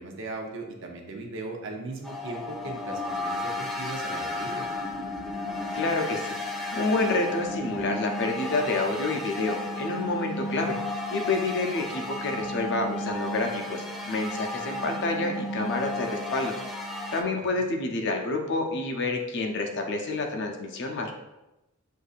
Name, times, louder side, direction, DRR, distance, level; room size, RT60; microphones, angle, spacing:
voice 1, 0.0-4.6, right 3 dB, 55° right, 1 dB, 0.7 m, -38 dB
sound 1, 2.0-17.2, left 2 dB, ahead, 0.4 m, -33 dB
voice 2, 5.7-6.3 6.7-10.8 11.1-16.5 17.1-21.1, left 2 dB, 50° left, 3 dB, 0.5 m, -28 dB
6.4 x 2.6 x 2.4 m, 0.95 s
head